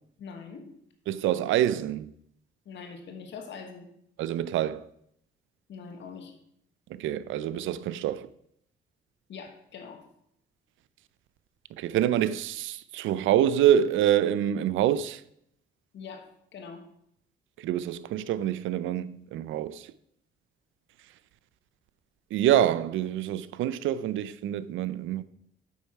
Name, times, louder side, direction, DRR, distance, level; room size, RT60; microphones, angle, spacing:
voice 1, 0.2-0.7 2.6-3.9 5.7-6.3 9.3-10.0 15.9-16.3 16.5-16.8, left 5 dB, 65° left, 1.4 m, -42 dB
voice 2, 1.1-2.1 4.2-4.9 6.9-8.3 11.8-15.2 17.6-19.9 22.3-25.2, right 11 dB, 80° right, 0.5 m, -26 dB
8.3 x 4.7 x 5.7 m
cardioid pair, 90°, 20 cm